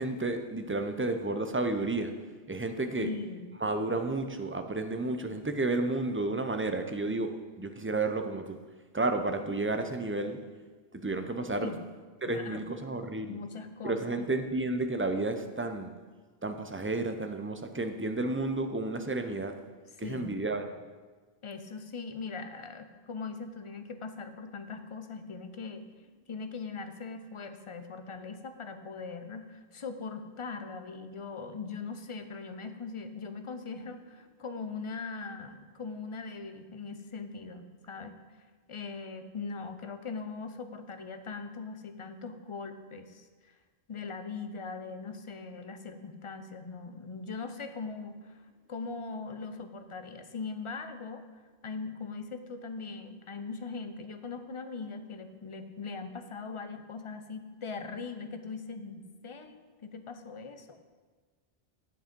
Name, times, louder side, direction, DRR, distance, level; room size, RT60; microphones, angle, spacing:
voice 1, 0.0-2.1 2.5-3.1 3.6-7.3 7.6-8.6 8.9-10.4 10.9-11.7 12.2-13.4 13.8-15.9 16.4-19.5 20.0-20.6, right 2 dB, 20° right, 7 dB, 0.3 m, -31 dB
voice 2, 3.0-3.5 11.5-11.8 12.3-12.6 13.2-14.3 20.0-20.4 21.4-25.8 26.3-38.2 38.7-43.6 43.9-48.4 48.7-51.2 51.6-60.8, left 4 dB, 35° left, 8 dB, 0.6 m, -40 dB
8.3 x 7.5 x 5.2 m, 1.4 s
omnidirectional pair, 1.0 m